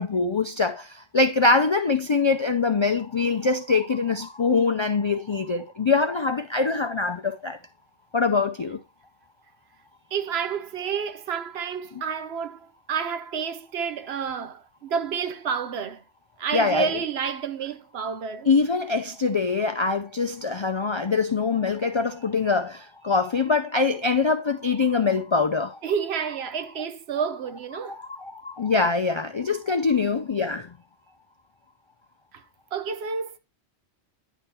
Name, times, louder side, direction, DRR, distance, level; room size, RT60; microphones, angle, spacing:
voice 1, 0.0-7.6 8.1-8.8 16.5-16.9 18.5-25.8 27.8-30.7, left 4 dB, 50° left, 0.3 m, -23 dB
voice 2, 10.1-16.0 16.4-18.5 25.8-28.0 32.7-33.4, right 6 dB, 65° right, 0.9 m, -30 dB
10.0 x 3.6 x 4.3 m
omnidirectional pair, 1.2 m